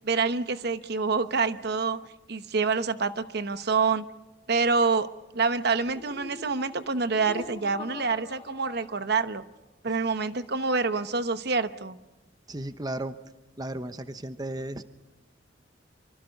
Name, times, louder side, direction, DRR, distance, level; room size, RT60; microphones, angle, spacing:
voice 1, 0.0-2.0 2.3-4.0 4.5-5.1 5.3-9.4 9.8-12.0, right 4 dB, 60° right, 11 dB, 1.0 m, -27 dB
Laughter, 5.8-9.5, left 2 dB, 35° left, 2.2 m, -44 dB
voice 2, 12.5-13.1 13.6-14.8, right 1 dB, 20° right, 11 dB, 0.9 m, -34 dB
25.0 x 25.0 x 5.3 m, 1.1 s
head